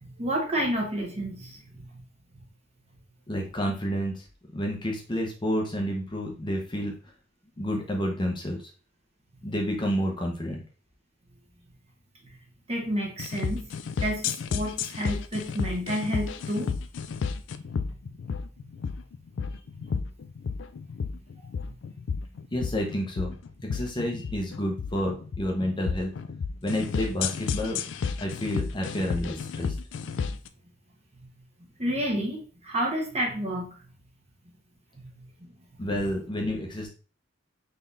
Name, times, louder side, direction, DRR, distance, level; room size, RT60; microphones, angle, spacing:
voice 1, 0.0-2.0 12.7-13.6 14.0-16.7 19.9-20.0 21.4-21.5 31.8-33.8 35.1-35.2, equal, 35° right, 0 dB, 1.0 m, -30 dB
voice 2, 3.3-4.2 4.5-6.9 7.6-8.6 9.4-10.6 22.5-23.3 23.6-26.1 26.6-27.8 28.2-29.7 35.8-36.9, equal, 25° left, 0 dB, 0.7 m, -29 dB
sound 1, 13.2-30.5, left 5 dB, 70° left, 0.3 m, -32 dB
3.9 x 3.4 x 2.6 m, 0.37 s
head